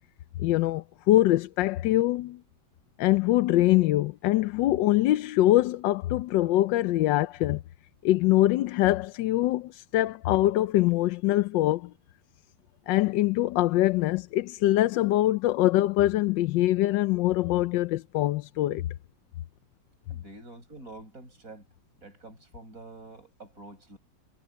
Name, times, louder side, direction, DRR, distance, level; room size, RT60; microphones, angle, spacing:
voice 1, 0.4-2.4 3.0-7.6 8.0-11.9 12.9-18.9, left 15 dB, 90° left, 1.3 m, -23 dB
voice 2, 20.1-21.6 22.0-24.0, right 2 dB, 50° right, 8.1 m, -47 dB
omnidirectional pair, 1.9 m